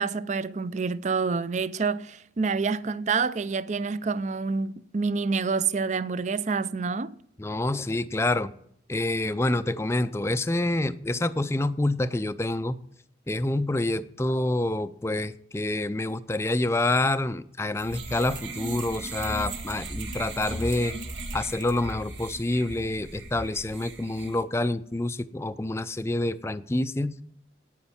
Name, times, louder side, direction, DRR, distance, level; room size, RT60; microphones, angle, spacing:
voice 1, 0.0-7.1, right 4 dB, 40° right, 0.5 m, -27 dB
voice 2, 7.4-8.5 8.9-12.8 13.3-20.9 21.3-27.1, left 2 dB, 15° left, 0.4 m, -27 dB
sound 1, 17.8-24.4, right 2 dB, 80° right, 1.6 m, -37 dB
9.5 x 9.1 x 7.2 m
head